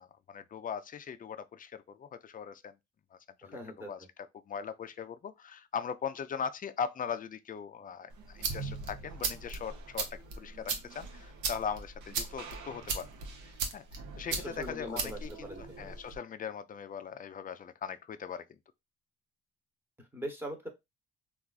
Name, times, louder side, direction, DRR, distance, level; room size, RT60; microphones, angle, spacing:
voice 1, 0.0-2.7 3.1-3.6 3.9-4.1 4.5-13.1 13.4-18.4, left 7 dB, 30° left, 0.4 m, -40 dB
voice 2, 3.4-4.1 14.3-16.0 20.0-20.7, equal, 5° right, 0.9 m, -42 dB
sound 1, 8.1-16.2, right 4 dB, 80° right, 0.8 m, -38 dB
3.4 x 2.4 x 2.3 m
cardioid pair, 90°, 30 cm